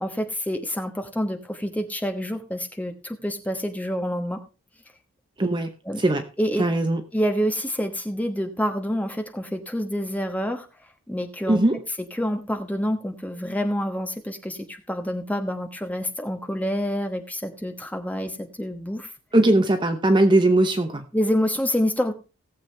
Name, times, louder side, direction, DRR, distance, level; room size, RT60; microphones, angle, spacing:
voice 1, 0.0-4.4 5.9-6.0 6.4-6.6 7.1-10.7 11.1-11.6 12.2-19.1 21.1-22.1, equal, 5° left, 5 dB, 1.1 m, -27 dB
voice 2, 5.4-5.7 6.0-6.3 6.6-7.0 11.5-11.8 19.3-21.1, right 1 dB, 20° right, 7 dB, 0.7 m, -20 dB
18.0 x 7.3 x 3.3 m, 0.32 s
head